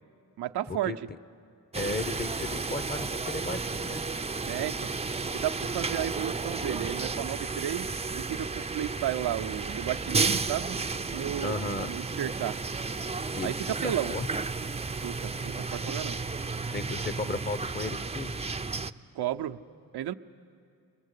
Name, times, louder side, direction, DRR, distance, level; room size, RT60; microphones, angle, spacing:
voice 1, 0.4-1.0 4.5-4.9 5.3-10.8 11.1-12.6 13.4-14.1 14.9-16.2 19.1-19.6 19.9-20.1, right 12 dB, 85° right, 8 dB, 0.7 m, -33 dB
voice 2, 1.7-4.1 11.4-11.9 13.3-14.3 16.7-18.4, left 3 dB, 25° left, 13 dB, 0.9 m, -35 dB
sound 1, 1.7-18.9, right 4 dB, 15° right, 0.6 m, -33 dB
30.0 x 21.5 x 8.3 m, 2.3 s
cardioid pair, 65°, 39 cm